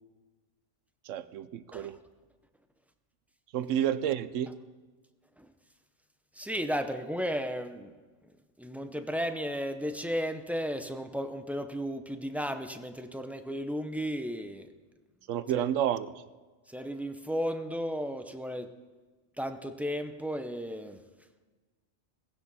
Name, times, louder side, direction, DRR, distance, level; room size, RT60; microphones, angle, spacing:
voice 1, 1.1-2.0 3.5-4.5 15.3-16.1, right 10 dB, 80° right, 15 dB, 1.0 m, -30 dB
voice 2, 6.4-7.9 8.6-14.7 16.7-18.7 19.4-21.0, equal, ahead, 7 dB, 0.4 m, -34 dB
17.5 x 16.0 x 4.1 m, 1.3 s
omnidirectional pair, 1.3 m